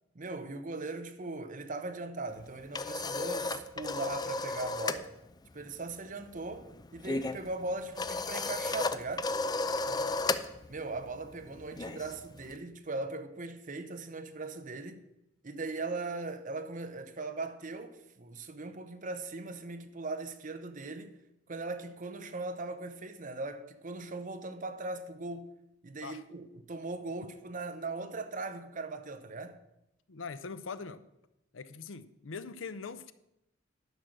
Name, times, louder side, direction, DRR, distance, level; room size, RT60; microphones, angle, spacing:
voice 1, 0.1-5.1 5.5-9.3 10.7-15.0 15.4-21.1 21.5-25.5 25.8-29.6, right 3 dB, 45° right, 0.9 m, -39 dB
sound 1, 2.4-5.1 5.3-5.6 5.9-12.6, left 3 dB, 20° left, 0.5 m, -35 dB
voice 2, 9.8-10.2 26.0-26.2 30.1-31.0 31.5-33.1, left 5 dB, 80° left, 0.6 m, -42 dB
11.0 x 6.1 x 6.5 m
head